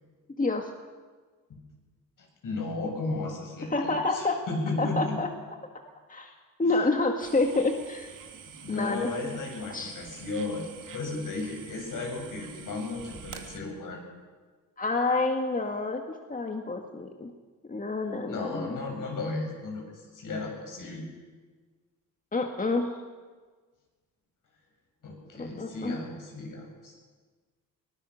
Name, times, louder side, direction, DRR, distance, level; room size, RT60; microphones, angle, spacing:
voice 1, 0.4-0.7 3.7-4.4 4.8-5.3 6.1-6.3 6.6-8.1 8.7-9.4 9.7-9.9 14.8-16.0 16.3-17.3 17.7-18.8 22.3-23.0 25.4-26.0, left 3 dB, 25° left, 3 dB, 1.9 m, -28 dB
voice 2, 2.2-5.2 8.4-10.6 10.9-14.0 18.3-21.1 25.0-26.9, left 3 dB, 65° left, 1 dB, 7.4 m, -34 dB
sound 1, 7.2-13.6, right 7 dB, 65° right, 2.3 m, -47 dB
21.5 x 18.5 x 6.5 m, 1.4 s
cardioid pair, 85°, 35 cm